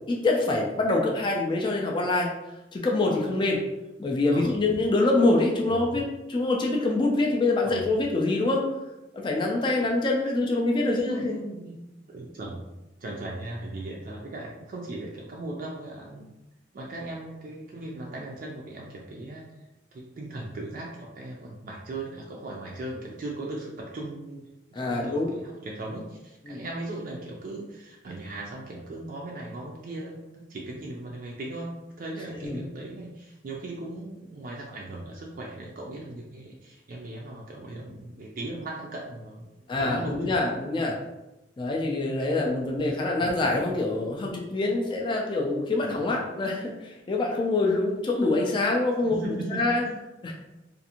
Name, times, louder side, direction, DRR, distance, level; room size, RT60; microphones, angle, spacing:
voice 1, 0.1-2.3 2.7-3.6 4.0-6.0 6.3-8.6 9.1-11.3 24.7-25.3 26.5-26.6 32.4-32.6 39.7-41.0 41.6-49.2 49.5-49.8 50.2-50.3, left 2 dB, 25° left, -1 dB, 0.3 m, -25 dB
voice 2, 5.5-6.0 7.6-7.9 10.8-11.8 12.1-12.6 13.0-16.3 16.7-19.5 19.9-40.4 43.2-43.3 45.8-46.0 49.0-49.9, right 2 dB, 50° right, -2 dB, 0.4 m, -38 dB
2.5 x 2.5 x 2.8 m, 0.99 s
head